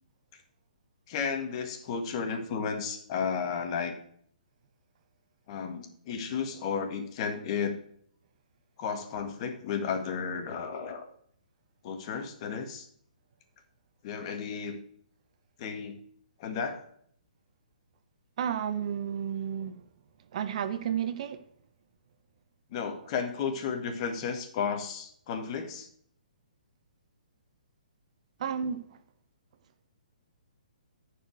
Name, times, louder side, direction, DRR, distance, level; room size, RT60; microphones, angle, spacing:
voice 1, 1.1-4.0 5.5-7.8 8.8-11.0 11.8-12.9 14.0-14.8 15.6-16.0 16.4-16.8 22.7-25.9, left 6 dB, 40° left, 6 dB, 1.6 m, -33 dB
voice 2, 18.4-19.9 20.3-21.4 28.4-29.0, right 8 dB, 50° right, 11 dB, 0.9 m, -32 dB
10.0 x 4.9 x 6.4 m, 0.64 s
hypercardioid pair, 145°, 4 cm